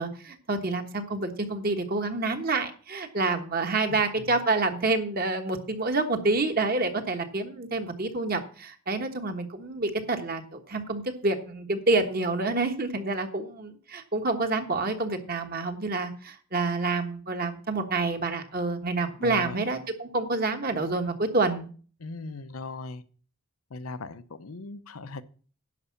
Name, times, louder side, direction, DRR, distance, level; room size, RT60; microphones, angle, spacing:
voice 1, 0.0-21.7, right 3 dB, 45° right, 6 dB, 1.3 m, -28 dB
voice 2, 3.9-4.4 19.2-19.6 22.0-23.0 23.7-25.2, left 3 dB, 80° left, 13 dB, 0.8 m, -39 dB
11.0 x 5.5 x 7.1 m, 0.42 s
head